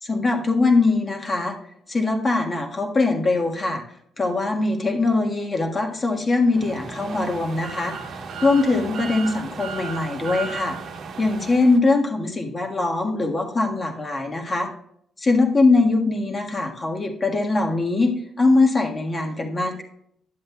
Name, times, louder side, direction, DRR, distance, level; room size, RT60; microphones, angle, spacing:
voice 1, 0.0-1.6 1.9-3.8 4.2-7.9 8.4-10.8 11.2-14.7 15.2-19.8, left 3 dB, 30° left, 2 dB, 1.5 m, -21 dB
sound 1, 6.5-11.8, right 5 dB, 65° right, 1.0 m, -35 dB
10.5 x 7.6 x 2.3 m, 0.69 s
cardioid pair, 90°, 0 cm